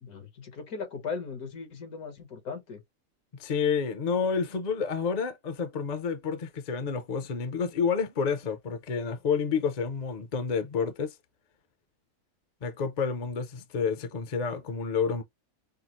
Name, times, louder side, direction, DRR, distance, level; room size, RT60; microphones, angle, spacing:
voice 1, 0.0-2.8, left 5 dB, 85° left, 1.8 m, -38 dB
voice 2, 3.3-11.1 12.6-15.2, left 6 dB, 45° left, 0.5 m, -29 dB
5.7 x 2.0 x 3.0 m
omnidirectional pair, 1.5 m